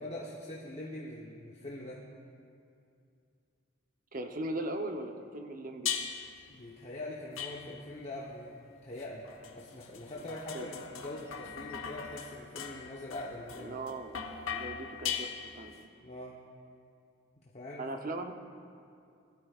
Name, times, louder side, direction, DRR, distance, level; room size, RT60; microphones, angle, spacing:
voice 1, 0.0-2.1 6.5-13.8 16.0-16.4 17.4-17.9, left 1 dB, 30° left, -4 dB, 0.9 m, -43 dB
voice 2, 4.1-5.9 10.5-10.7 13.6-15.9 17.8-18.3, right 2 dB, 40° right, 5 dB, 0.7 m, -39 dB
sound 1, 5.9-6.4 7.4-8.0 9.0-15.8, left 7 dB, 80° left, 1.1 m, -40 dB
20.5 x 12.5 x 2.4 m, 2.5 s
head